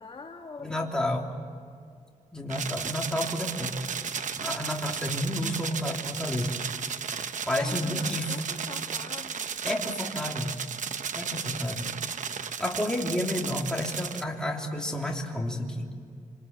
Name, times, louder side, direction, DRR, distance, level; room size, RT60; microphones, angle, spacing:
voice 1, 0.0-1.4 7.5-9.5, left 4 dB, 40° left, 2 dB, 1.7 m, -44 dB
voice 2, 0.6-1.3 2.3-3.8 4.4-6.5 7.5-8.4 9.6-10.5 11.1-11.9 12.6-15.9, left 1 dB, 5° left, -1 dB, 3.4 m, -31 dB
sound 1, 2.5-14.2, right 7 dB, 65° right, 1.0 m, -34 dB
27.5 x 27.0 x 7.9 m, 2.2 s
wide cardioid pair, 140°, 13 cm